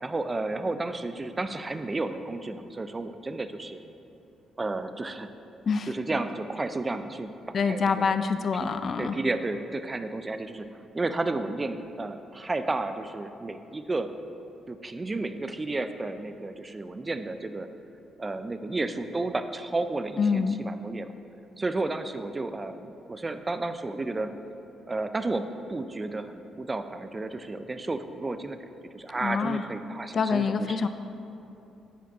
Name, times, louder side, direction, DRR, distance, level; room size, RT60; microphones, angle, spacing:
voice 1, 0.0-3.8 4.6-5.3 5.9-8.0 8.5-8.7 9.0-10.7 10.9-14.1 14.7-17.7 18.2-21.1 21.6-24.3 24.9-28.6 28.9-30.8, right 2 dB, 25° right, 10 dB, 0.4 m, -32 dB
voice 2, 7.5-9.2 20.2-20.6 29.2-29.6 30.1-30.9, left 5 dB, 50° left, 10 dB, 0.3 m, -26 dB
9.1 x 4.7 x 3.5 m, 2.8 s
cardioid pair, 90°, 0 cm